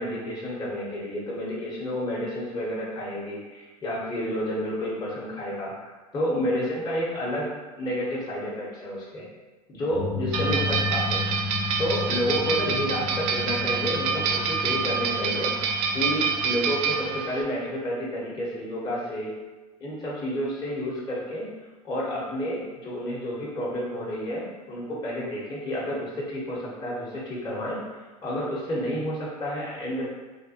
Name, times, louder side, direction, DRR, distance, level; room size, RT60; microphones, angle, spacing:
voice 1, 0.0-7.5 7.8-9.3 9.7-11.3 11.8-15.5 15.9-19.4 19.8-21.5 21.8-30.0, equal, 20° left, -7 dB, 0.9 m, -30 dB
sound 1, 9.9-17.2, left 4 dB, 5° right, 0.6 m, -33 dB
sound 2, 10.3-17.4, right 6 dB, 55° right, 0.5 m, -27 dB
3.2 x 2.2 x 2.7 m, 1.2 s
hypercardioid pair, 80°, 20 cm